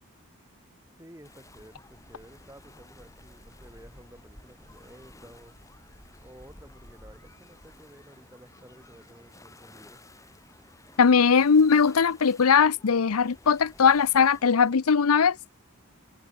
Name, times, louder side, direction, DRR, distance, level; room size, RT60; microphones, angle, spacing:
voice 1, 1.0-5.5 6.2-10.0, right 1 dB, 15° right, 4.9 m, -52 dB
sound 1, 1.2-14.7, left 1 dB, 15° left, 4.4 m, -53 dB
voice 2, 11.0-15.4, left 6 dB, 85° left, 0.6 m, -20 dB
head